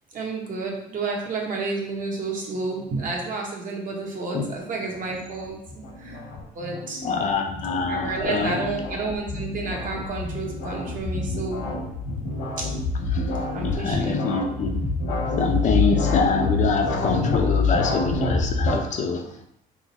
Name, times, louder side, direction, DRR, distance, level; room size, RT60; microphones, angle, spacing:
voice 1, 0.1-6.2 6.5-7.0 7.9-11.7 12.6-12.7 13.5-14.2, right 3 dB, 50° right, -1 dB, 1.0 m, -30 dB
sound 1, 4.9-18.7, left 3 dB, 70° left, 1.2 m, -27 dB
voice 2, 7.0-8.6 13.1-13.4 13.6-14.8 15.4-19.5, left 4 dB, 45° left, 4 dB, 0.5 m, -25 dB
3.6 x 2.5 x 4.1 m, 0.76 s
cardioid pair, 110°, 17 cm